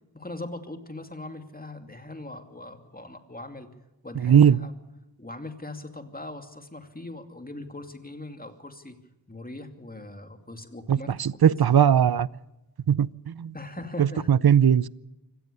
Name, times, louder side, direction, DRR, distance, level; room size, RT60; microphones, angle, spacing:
voice 1, 0.1-3.7 4.0-4.7 5.2-9.0 9.3-11.1 13.5-14.3, left 2 dB, 20° left, 6 dB, 2.6 m, -40 dB
voice 2, 4.1-4.6 10.9-12.3 12.9-13.5 14.0-14.9, right 8 dB, 60° right, 21 dB, 0.7 m, -19 dB
25.0 x 17.5 x 6.8 m, 1.0 s
wide cardioid pair, 60°, 42 cm